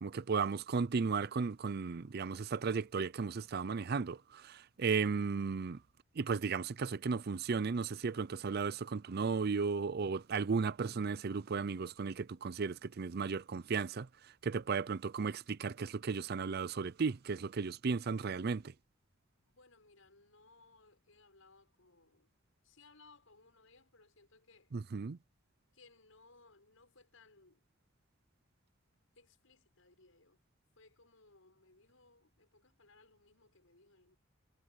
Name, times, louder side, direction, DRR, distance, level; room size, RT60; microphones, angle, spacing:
voice 1, 0.0-5.8 6.2-14.1 14.4-18.7 24.7-25.2, right 5 dB, 50° right, 0.5 m, -35 dB
voice 2, 19.4-22.3 22.6-24.7 25.7-27.7 29.1-30.4 30.8-34.2, left 3 dB, 85° left, 6.6 m, -64 dB
head